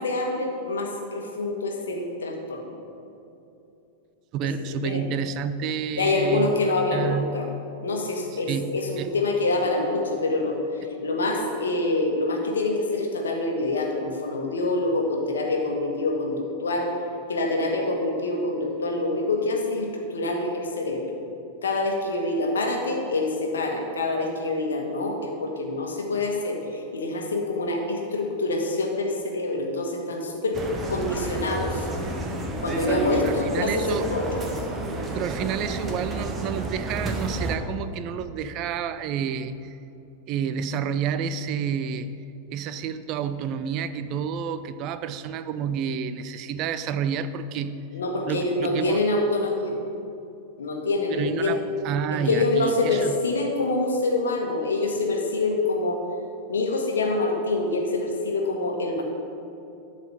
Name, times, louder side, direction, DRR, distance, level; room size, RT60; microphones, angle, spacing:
voice 1, 0.0-2.7 4.8-5.0 6.0-7.5 7.8-10.6 11.0-16.4 16.6-16.9 17.3-21.1 21.6-30.6 30.9-31.8 32.6-34.4 47.9-49.7 50.6-51.6 52.3-56.0 56.5-59.0, left 2 dB, 70° left, 1 dB, 1.4 m, -26 dB
voice 2, 4.3-6.5 6.9-7.4 8.3-9.2 33.2-34.1 35.1-39.8 40.3-42.1 42.5-47.7 48.3-49.0 51.1-53.1, right 7 dB, 40° right, 12 dB, 0.4 m, -29 dB
sound 1, 30.5-37.6, right 1 dB, 20° right, 1.0 m, -30 dB
12.0 x 4.1 x 6.8 m, 2.8 s
figure-of-eight pair, 90°, 0 cm